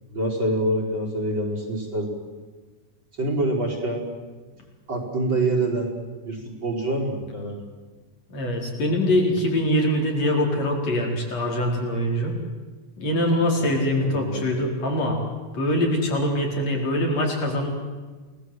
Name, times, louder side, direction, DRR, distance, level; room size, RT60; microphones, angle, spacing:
voice 1, 0.1-2.1 3.2-4.0 4.9-5.9 6.2-7.6 9.0-9.1 13.6-13.7 14.0-14.5, right 1 dB, 35° right, 2 dB, 5.6 m, -26 dB
voice 2, 8.3-12.3 13.0-15.2 15.5-17.7, left 1 dB, 55° left, 0 dB, 5.5 m, -23 dB
29.0 x 19.5 x 7.9 m, 1.3 s
omnidirectional pair, 3.6 m